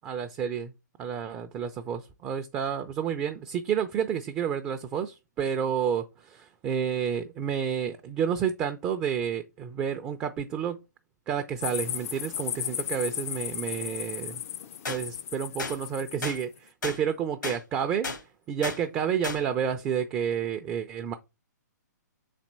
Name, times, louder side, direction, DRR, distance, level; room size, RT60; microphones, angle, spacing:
voice 1, 0.0-0.7 1.0-10.8 11.3-14.4 14.9-18.1 18.5-21.1, right 8 dB, 20° right, 0.5 m, -30 dB
sound 1, 11.6-16.4, left 10 dB, 50° left, 0.5 m, -35 dB
sound 2, 14.8-15.0 15.6-15.7 16.2-16.4 16.8-17.0 17.4-17.6 18.0-18.2 18.6-18.8 19.2-19.4, left 3 dB, 85° left, 1.8 m, -32 dB
5.8 x 4.2 x 4.4 m
hypercardioid pair, 140°, 10 cm